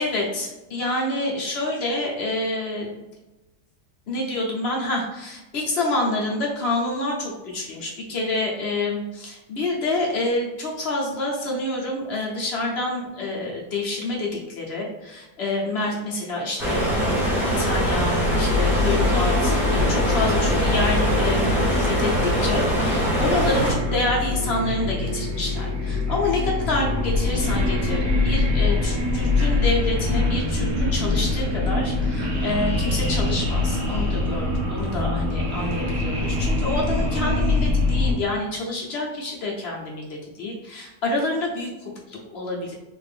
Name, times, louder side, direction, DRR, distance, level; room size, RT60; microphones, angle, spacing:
voice 1, 0.0-3.0 4.1-17.3 17.6-21.4 21.7-42.7, left 2 dB, 50° left, -2 dB, 0.8 m, -27 dB
sound 1, 16.6-23.7, equal, ahead, 0.7 m, -23 dB
sound 2, 18.3-38.1, left 3 dB, 65° right, 1.5 m, -24 dB
3.5 x 2.6 x 3.3 m, 1.0 s
omnidirectional pair, 1.8 m